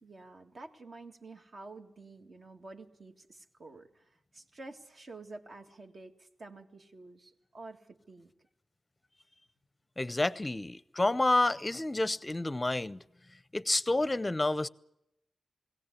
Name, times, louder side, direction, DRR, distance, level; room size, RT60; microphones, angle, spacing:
voice 1, 0.0-8.3, right 3 dB, 50° right, 1.9 m, -50 dB
voice 2, 10.0-13.0 13.5-14.7, left 2 dB, 20° left, 0.7 m, -29 dB
21.5 x 17.5 x 8.4 m
wide cardioid pair, 100°, 0 cm